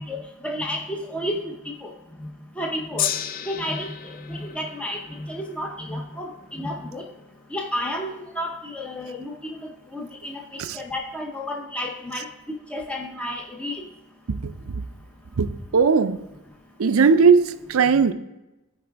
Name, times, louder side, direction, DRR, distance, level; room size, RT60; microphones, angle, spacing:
voice 1, 0.0-1.4 1.8-1.9 2.6-3.1 3.5-7.0 7.5-12.3 12.7-13.9, left 1 dB, 5° left, 0.7 m, -31 dB
Gong, 3.0-9.3 10.1-10.2, left 10 dB, 40° left, 0.4 m, -35 dB
voice 2, 14.3-14.8 15.4-16.3 16.8-18.1, right 5 dB, 65° right, 0.5 m, -19 dB
14.0 x 4.8 x 3.4 m
head